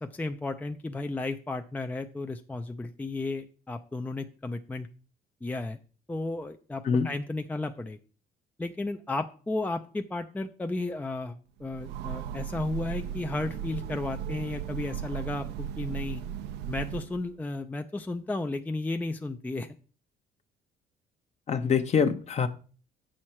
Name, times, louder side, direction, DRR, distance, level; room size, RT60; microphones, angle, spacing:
voice 1, 0.0-4.9 5.4-5.8 6.1-8.0 8.6-16.2 16.7-19.7, left 2 dB, 10° left, 6 dB, 0.5 m, -34 dB
Train, 11.6-17.3, right 9 dB, 85° right, 0.6 m, -36 dB
voice 2, 21.5-22.5, left 6 dB, 40° left, 9 dB, 0.9 m, -24 dB
8.3 x 6.3 x 4.4 m, 0.39 s
cardioid pair, 110°, 17 cm